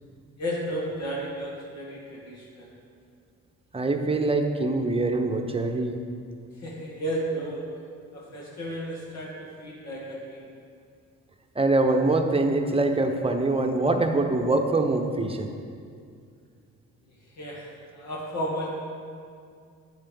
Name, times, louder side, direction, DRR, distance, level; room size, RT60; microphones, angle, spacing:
voice 1, 0.4-2.7 6.6-7.6 8.1-10.4 17.4-17.7 17.9-18.7, equal, 60° left, -4 dB, 2.4 m, -33 dB
voice 2, 3.7-6.0 11.6-15.5, right 2 dB, 20° right, 4 dB, 0.9 m, -24 dB
9.4 x 7.4 x 5.3 m, 2.3 s
cardioid pair, 90°, 30 cm